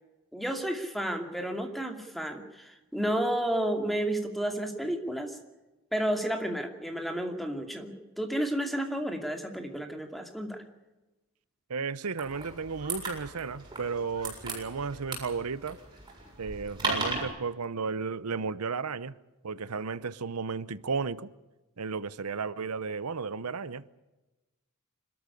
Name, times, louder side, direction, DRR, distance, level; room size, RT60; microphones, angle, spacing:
voice 1, 0.3-5.4 5.9-10.6, right 1 dB, ahead, 2.5 m, -31 dB
voice 2, 11.7-15.8 16.4-19.2 19.4-21.3 21.8-24.0, right 5 dB, 85° right, 0.8 m, -34 dB
sound 1, 12.2-17.2, right 3 dB, 20° right, 7.5 m, -36 dB
25.5 x 13.5 x 9.9 m
head